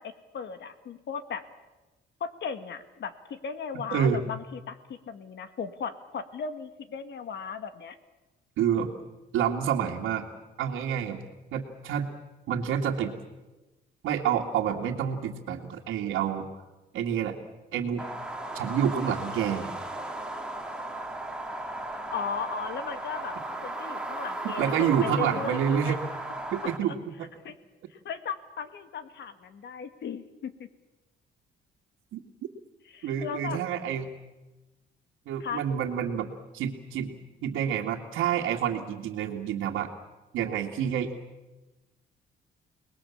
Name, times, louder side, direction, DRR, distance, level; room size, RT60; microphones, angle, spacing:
voice 1, 0.0-1.4 2.2-8.0 22.1-23.4 23.6-26.0 26.9-27.0 27.4-27.5 27.9-30.7 32.9-33.6 35.4-35.6, left 6 dB, 65° left, 9 dB, 2.2 m, -36 dB
voice 2, 3.9-4.2 8.6-8.9 9.3-10.3 10.6-11.2 11.5-12.1 12.5-13.1 14.0-16.5 16.9-17.4 17.7-18.1 18.5-19.7 24.6-26.0 26.5-27.3 32.1-32.2 33.0-34.1 35.3-37.1 37.4-39.9 40.3-41.1, right 8 dB, 90° right, -4 dB, 2.3 m, -28 dB
sound 1, 18.0-26.8, right 1 dB, 5° right, 2.7 m, -36 dB
29.5 x 20.5 x 7.4 m, 1.1 s
cardioid pair, 90°, 20 cm